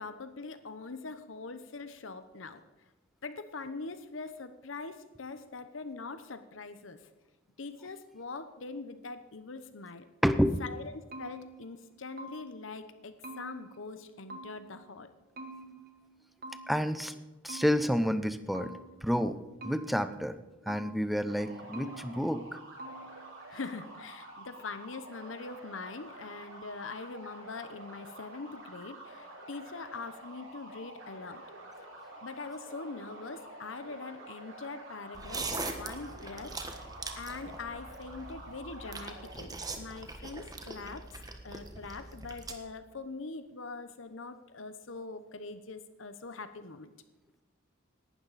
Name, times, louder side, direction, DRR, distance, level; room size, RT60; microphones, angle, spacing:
voice 1, 0.0-2.6 3.2-7.1 7.6-10.1 10.6-15.1 23.5-31.4 32.2-36.6 37.2-41.1 41.4-46.9, left 4 dB, 75° left, 11 dB, 0.9 m, -43 dB
voice 2, 10.2-10.6 15.7-15.8 16.7-17.2 17.4-18.7 19.0-20.4 20.7-22.5, equal, ahead, 11 dB, 0.6 m, -29 dB
sound 1, 10.6-12.8 13.2-14.9 15.4-17.0 17.5-19.1 19.6-21.2 21.7-22.5 22.8-23.4, right 2 dB, 50° right, 1.4 m, -48 dB
sound 2, 21.3-39.3, right 2 dB, 80° right, 5.1 m, -49 dB
sound 3, 35.1-42.5, right 3 dB, 20° right, 1.3 m, -41 dB
18.0 x 12.0 x 4.2 m, 1.1 s
head